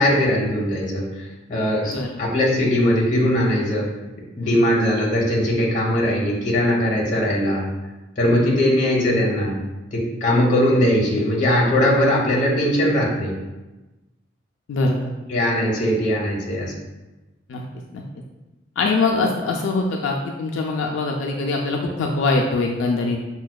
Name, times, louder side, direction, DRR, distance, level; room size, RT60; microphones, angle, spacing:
voice 1, 0.0-3.9 4.4-7.7 8.2-9.6 9.9-13.3 15.3-16.7, left 1 dB, 40° left, -2 dB, 0.8 m, -20 dB
voice 2, 8.2-8.7 14.7-15.1 17.5-17.6 17.9-18.0 18.8-23.2, left 3 dB, 80° left, 1 dB, 0.3 m, -23 dB
4.8 x 2.1 x 2.2 m, 1.1 s
head